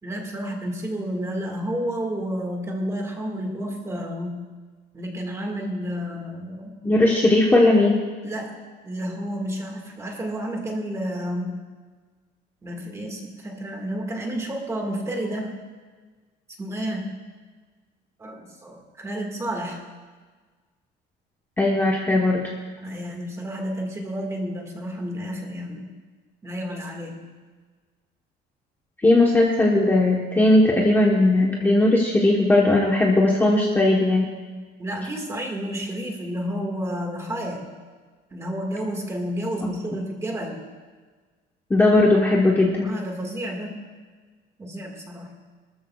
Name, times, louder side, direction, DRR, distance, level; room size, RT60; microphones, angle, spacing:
voice 1, 0.0-4.4 4.9-6.8 8.2-8.6 8.8-11.6 12.6-15.6 16.6-17.2 18.2-19.8 22.7-25.9 26.4-27.2 34.8-37.7 38.3-40.7 42.8-43.8 44.6-45.3, equal, 15° right, 1 dB, 1.8 m, -31 dB
voice 2, 6.8-8.0 21.6-22.5 29.0-34.3 41.7-42.9, left 2 dB, 10° left, -3 dB, 1.1 m, -18 dB
23.5 x 13.5 x 2.3 m, 1.4 s
cardioid pair, 180°, 20 cm